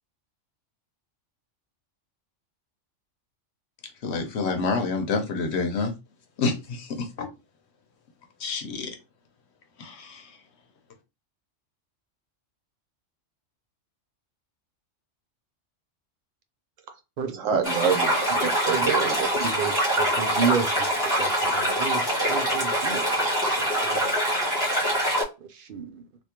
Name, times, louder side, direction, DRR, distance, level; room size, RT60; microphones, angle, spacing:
voice 1, 4.0-5.9 6.4-7.3 8.4-8.9 9.8-10.4, left 4 dB, 65° left, 1.0 m, -28 dB
voice 2, 17.2-19.3, right 7 dB, 80° right, 1.2 m, -27 dB
sound 1, 17.6-25.2, equal, 15° left, 1.4 m, -24 dB
voice 3, 18.4-18.9 19.4-20.9 21.2-24.1 25.4-26.1, right 7 dB, 60° right, 0.6 m, -31 dB
3.5 x 2.7 x 2.9 m
omnidirectional pair, 1.3 m